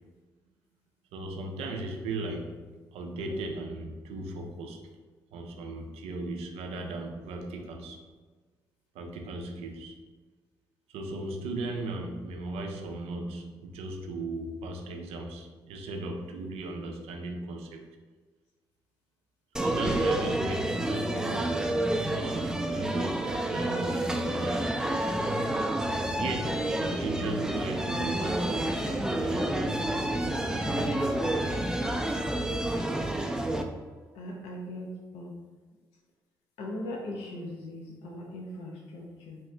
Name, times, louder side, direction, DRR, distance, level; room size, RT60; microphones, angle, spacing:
voice 1, 1.1-2.6 2.9-4.9 5.3-8.0 8.9-10.0 10.9-17.9 19.6-21.8 22.1-25.3 26.2-30.1 30.4-31.1, right 2 dB, 75° right, 3 dB, 0.4 m, -37 dB
sound 1, 19.6-33.6, right 1 dB, 5° right, 0.4 m, -29 dB
voice 2, 34.1-34.9 35.1-35.3 36.6-39.4, left 1 dB, 75° left, -1 dB, 0.5 m, -39 dB
2.8 x 2.4 x 3.2 m, 1.4 s
hypercardioid pair, 45°, 11 cm